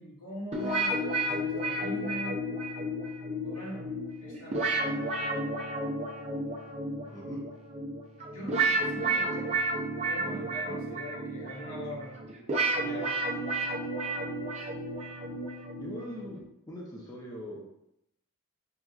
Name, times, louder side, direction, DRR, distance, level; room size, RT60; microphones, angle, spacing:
voice 1, 0.0-2.4 3.3-3.9 4.2-4.6 8.3-9.4 9.9-12.2 12.7-13.1, equal, 80° left, -4 dB, 1.3 m, -41 dB
sound 1, 0.5-16.4, right 2 dB, 30° right, 0.5 m, -32 dB
voice 2, 7.0-7.4 9.0-9.5 15.8-16.4 16.7-17.7, equal, 15° left, -4 dB, 0.6 m, -42 dB
5.8 x 2.5 x 2.3 m, 0.82 s
head